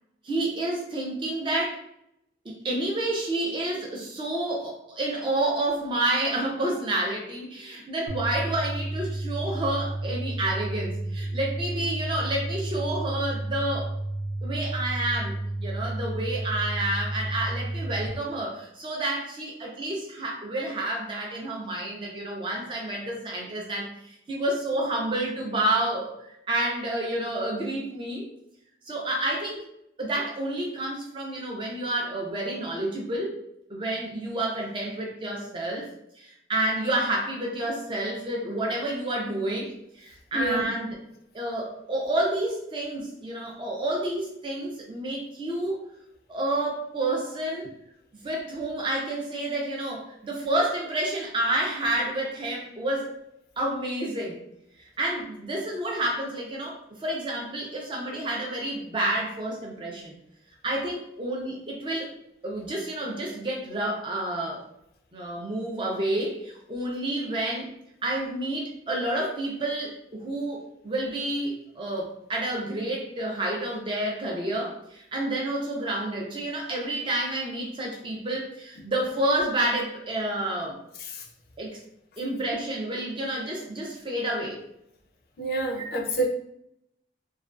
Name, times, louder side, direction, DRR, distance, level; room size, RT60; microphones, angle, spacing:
voice 1, 0.2-1.8 2.4-13.9 14.4-23.9 24.3-28.3 28.9-29.7 30.0-33.3 33.7-35.9 36.2-41.0 41.3-45.8 46.3-47.7 48.2-53.1 53.6-54.4 55.0-60.1 60.6-62.1 62.4-64.6 65.1-67.7 68.0-80.8 81.6-81.8 82.2-84.6 85.8-85.9, right 1 dB, 25° right, -1 dB, 0.5 m, -29 dB
sound 1, 8.1-18.1, right 2 dB, 85° right, 0.5 m, -32 dB
voice 2, 40.3-40.7 81.0-81.2 85.4-86.3, right 2 dB, 55° left, 2 dB, 0.4 m, -28 dB
2.3 x 2.2 x 2.3 m, 0.76 s
head